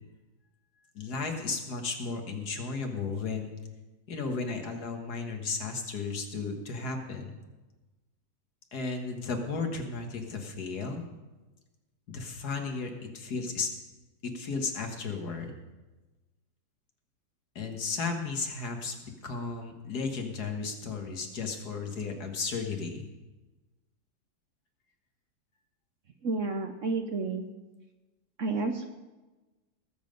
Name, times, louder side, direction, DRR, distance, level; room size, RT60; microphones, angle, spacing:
voice 1, 1.0-3.5 4.1-7.4 8.7-11.0 12.1-13.7 14.2-15.6 17.6-23.1, left 4 dB, 65° left, 4 dB, 2.0 m, -34 dB
voice 2, 26.2-27.5 28.4-28.9, right 3 dB, 55° right, 6 dB, 1.0 m, -30 dB
20.0 x 7.3 x 5.3 m, 1.2 s
omnidirectional pair, 1.9 m